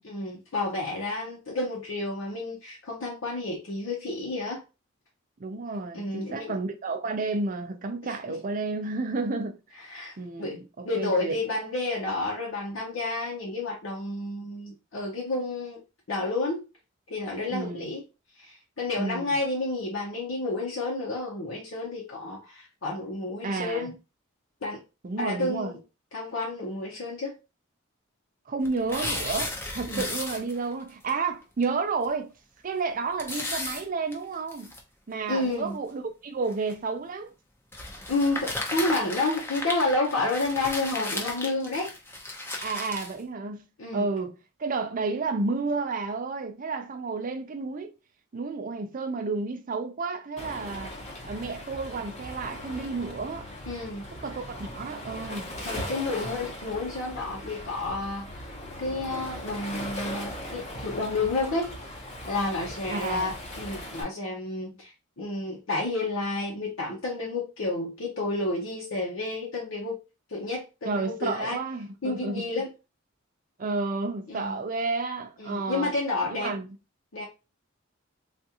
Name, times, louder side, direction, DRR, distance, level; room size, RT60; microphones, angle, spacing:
voice 1, 0.0-4.6 5.9-6.6 8.0-8.2 9.8-10.6 10.8-15.8 16.1-16.6 17.1-18.0 18.4-23.9 24.6-24.8 25.2-25.8 26.1-27.3 29.9-30.1 35.3-35.8 38.1-41.9 43.8-44.1 53.6-54.0 55.7-58.5 58.8-61.7 62.3-70.0 70.3-71.6 72.0-72.7 74.3-74.6 75.4-76.6 77.1-77.2, left 2 dB, 80° left, 0.8 m, -30 dB
voice 2, 5.4-9.6 10.2-11.4 17.5-17.9 19.0-19.4 23.4-23.9 25.0-25.8 28.5-32.3 32.6-34.7 35.1-37.3 42.6-43.6 43.9-44.3 44.6-47.9 48.3-51.0 51.3-53.5 54.2-55.5 62.9-63.3 70.8-72.5 73.6-75.9 76.3-76.7, right 3 dB, 40° right, 0.5 m, -31 dB
sound 1, 28.6-30.8 31.1-31.2 31.6-31.7 32.0-32.1 33.2-34.8 35.5-35.6 36.5-36.7 37.7-43.2, left 2 dB, 10° left, 0.6 m, -34 dB
Waves surf, 50.4-64.0, left 1 dB, 35° left, 0.9 m, -39 dB
3.5 x 2.4 x 2.8 m
head